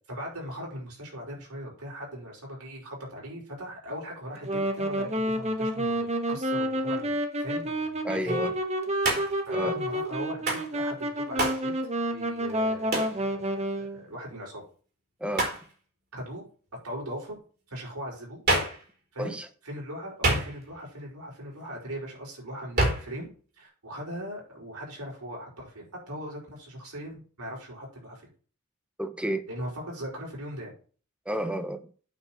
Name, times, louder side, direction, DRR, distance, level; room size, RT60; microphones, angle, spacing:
voice 1, 0.1-8.5 9.5-11.7 12.1-14.6 16.1-16.4 16.8-17.4 17.7-18.4 19.1-19.4 19.6-23.3 23.6-28.3 29.5-30.7, equal, 85° right, 5.8 m, -39 dB
Wind instrument woodwind instrument, 4.3-14.0, equal, 30° right, 1.3 m, -29 dB
voice 2, 8.0-8.5 9.5-9.8 15.2-15.5 19.2-19.5 29.0-29.4 31.3-31.9, right 1 dB, 5° right, 0.9 m, -31 dB
Hands, 9.0-9.5 10.5-10.7 11.4-11.7 12.9-13.2 15.3-15.7 18.5-18.8 20.2-20.8 22.8-23.1, right 2 dB, 45° right, 3.8 m, -26 dB
9.0 x 4.7 x 7.4 m
head